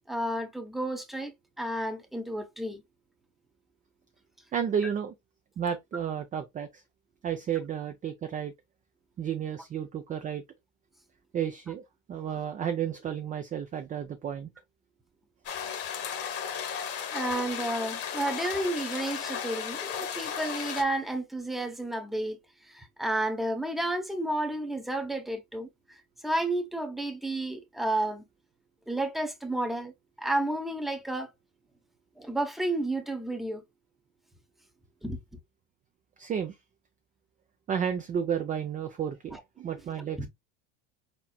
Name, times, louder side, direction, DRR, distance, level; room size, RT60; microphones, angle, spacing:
voice 1, 0.1-2.8 4.8-4.9 17.1-22.4 22.7-25.7 26.2-28.2 28.9-29.9 30.2-31.3 32.2-33.6 35.0-35.2 39.3-39.4 40.2-40.3, right 1 dB, ahead, 0.8 m, -31 dB
voice 2, 4.5-5.1 5.6-6.8 7.2-8.5 9.2-10.4 11.3-11.8 12.1-14.5 36.2-36.6 37.7-40.3, right 8 dB, 20° right, 0.4 m, -32 dB
sound 1, 15.5-20.8, left 8 dB, 40° left, 1.2 m, -35 dB
4.3 x 4.1 x 2.2 m
supercardioid pair, 120°, 36 cm